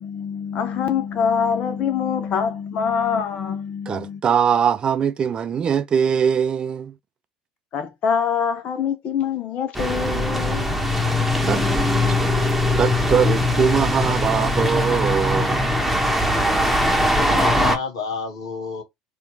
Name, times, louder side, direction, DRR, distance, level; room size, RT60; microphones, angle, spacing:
voice 1, 0.0-4.2 7.7-10.7 11.4-12.1, left 7 dB, 45° left, 0.6 m, -25 dB
voice 2, 3.9-6.9 11.5-11.6 12.1-12.3 12.8-15.7, right 7 dB, 35° right, 0.5 m, -21 dB
sound 1, 9.7-17.8, left 1 dB, ahead, 1.1 m, -21 dB
voice 3, 16.8-18.8, left 5 dB, 75° left, 1.4 m, -30 dB
4.3 x 2.4 x 4.5 m
figure-of-eight pair, 65°, 3 cm